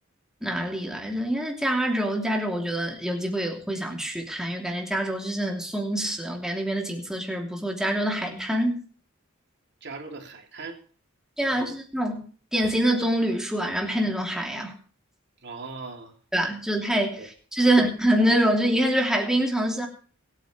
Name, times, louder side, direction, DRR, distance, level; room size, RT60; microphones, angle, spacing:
voice 1, 0.4-8.8 11.4-12.2 12.5-14.7 16.3-19.9, right 1 dB, 5° right, 3.1 m, -25 dB
voice 2, 9.8-10.8 11.4-11.7 15.4-16.1 17.2-17.3 17.7-17.8, right 4 dB, 55° right, 3.1 m, -39 dB
25.0 x 9.2 x 3.4 m
head